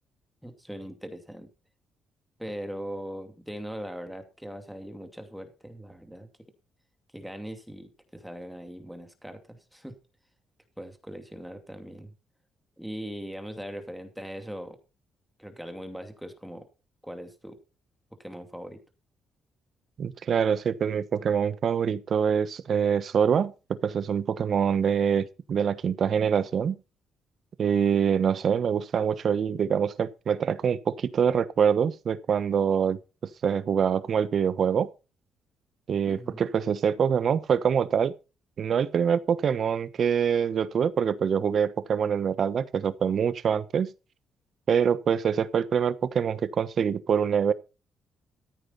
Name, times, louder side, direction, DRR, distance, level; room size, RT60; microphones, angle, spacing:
voice 1, 0.4-1.5 2.4-6.3 7.1-9.9 10.8-12.1 12.8-14.8 15.4-16.7 17.0-17.6 18.2-18.8 36.1-36.4, equal, ahead, 2.6 m, -40 dB
voice 2, 20.0-23.5 23.8-26.8 27.6-33.0 33.4-34.9 35.9-38.1 38.6-43.9 44.7-47.5, right 7 dB, 55° right, 1.1 m, -25 dB
14.0 x 8.8 x 4.2 m
cardioid pair, 90°, 0 cm